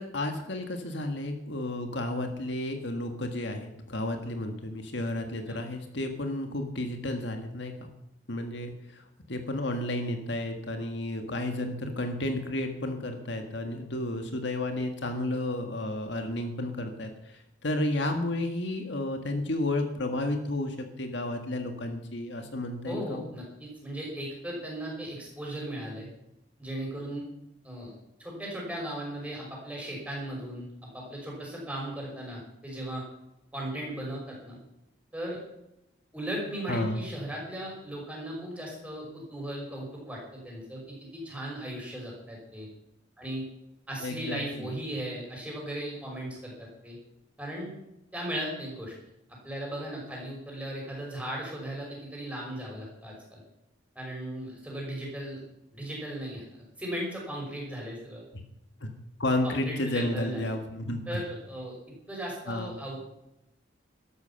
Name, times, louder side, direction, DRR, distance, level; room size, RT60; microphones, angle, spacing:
voice 1, 0.0-7.9 8.3-23.2 36.7-37.0 44.0-44.7 58.3-58.4 58.8-58.9 59.2-61.2 62.5-62.7, left 1 dB, 65° left, 5 dB, 1.7 m, -32 dB
voice 2, 22.8-26.1 26.6-27.2 27.6-27.9 28.2-33.0 33.5-34.6 35.1-35.4 36.1-42.7 43.2-43.5 43.9-47.0 47.4-47.7 48.1-48.9 49.4-53.4 54.0-55.4 55.7-56.4 56.8-58.2 59.4-60.5 61.1-61.8 62.1-62.9, right 1 dB, 5° right, -2 dB, 5.8 m, -37 dB
13.0 x 12.0 x 5.8 m, 0.87 s
head